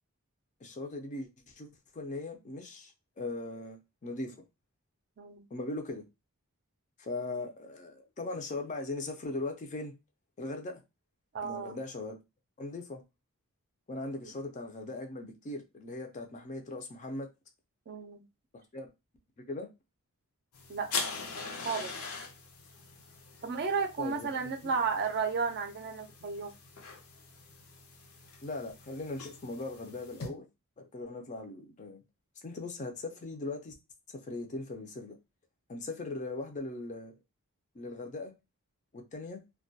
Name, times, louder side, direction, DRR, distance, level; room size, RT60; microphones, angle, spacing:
voice 1, 0.6-4.4 5.5-6.0 7.0-9.9 10.4-10.8 11.4-12.2 12.6-13.0 13.9-17.3 18.5-18.9 19.5-19.7 24.0-24.7 28.4-30.4 30.8-32.0 32.4-33.7 34.2-35.2 35.7-37.1 37.7-38.3 38.9-39.4, left 2 dB, 35° left, 0.4 m, -39 dB
voice 2, 11.3-11.8 14.2-14.3 17.9-18.2 20.7-20.9 21.6-21.9 23.4-26.5, right 5 dB, 45° right, 0.4 m, -33 dB
sound 1, 20.5-30.3, left 4 dB, 75° left, 0.6 m, -43 dB
2.2 x 2.2 x 2.6 m
head